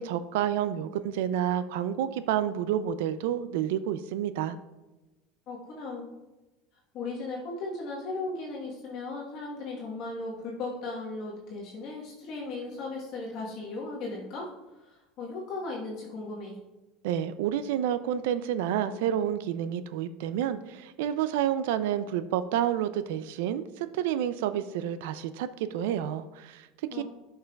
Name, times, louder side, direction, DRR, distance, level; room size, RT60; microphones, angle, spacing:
voice 1, 0.0-4.6 17.0-27.0, right 10 dB, 80° right, 13 dB, 0.4 m, -29 dB
voice 2, 5.5-6.1 6.9-14.5 14.8-16.6 26.9-27.0, left 3 dB, 45° left, -4 dB, 1.2 m, -37 dB
11.0 x 5.5 x 2.3 m, 1.1 s
cardioid pair, 155°, 0 cm